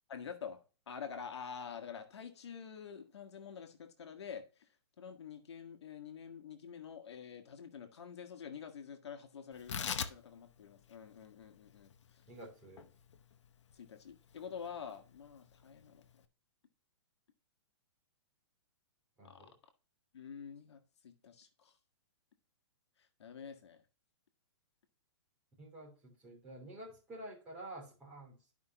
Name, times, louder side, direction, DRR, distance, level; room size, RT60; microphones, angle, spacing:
voice 1, 0.1-0.6 0.9-4.4 5.0-11.9 13.7-16.0 19.2-19.5 20.1-21.7 23.2-23.8, left 7 dB, 70° left, 6 dB, 1.4 m, -47 dB
Tearing, 9.5-16.2, left 7 dB, 85° left, 0.9 m, -45 dB
voice 2, 12.3-12.8 19.2-19.5 25.6-28.5, right 1 dB, 10° right, -5 dB, 3.1 m, -50 dB
12.0 x 5.2 x 2.9 m, 0.35 s
hypercardioid pair, 180°, 15 cm